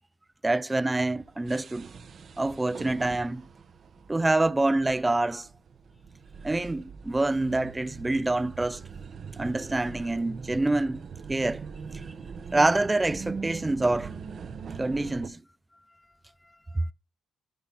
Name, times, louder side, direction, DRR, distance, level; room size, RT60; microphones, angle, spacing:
voice 1, 0.4-1.9 2.4-3.4 4.1-5.5 6.4-8.8 9.4-11.0 11.3-11.6 12.5-14.1 14.8-15.4, right 2 dB, 15° right, 0.5 m, -26 dB
sound 1, 1.1-15.3, right 5 dB, 50° right, 1.4 m, -42 dB
voice 2, 15.5-16.9, left 1 dB, 10° left, 0.9 m, -61 dB
15.0 x 5.6 x 4.2 m
cardioid pair, 90°, 0 cm